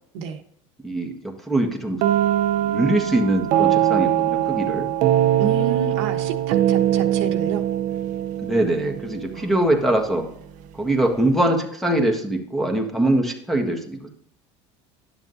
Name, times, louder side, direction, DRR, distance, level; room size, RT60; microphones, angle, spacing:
voice 1, 0.8-2.0 2.6-4.9 8.4-10.3 10.8-14.1, right 1 dB, ahead, 2 dB, 1.4 m, -22 dB
sound 1, 2.0-9.7, right 11 dB, 60° right, 0.7 m, -22 dB
voice 2, 5.4-7.6 9.3-9.8, right 6 dB, 80° right, 5 dB, 1.1 m, -30 dB
11.0 x 7.0 x 2.7 m, 0.69 s
supercardioid pair, 110°, 15 cm